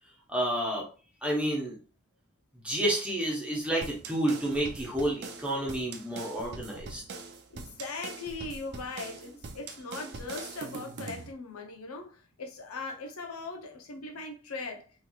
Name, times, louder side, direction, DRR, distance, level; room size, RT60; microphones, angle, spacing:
voice 1, 0.3-0.9 1.2-1.8 2.6-7.0, right 1 dB, 5° right, 0.9 m, -30 dB
sound 1, 3.8-11.3, right 4 dB, 50° right, 0.5 m, -43 dB
voice 2, 7.5-14.9, left 3 dB, 90° left, 0.7 m, -40 dB
3.2 x 3.1 x 2.3 m
head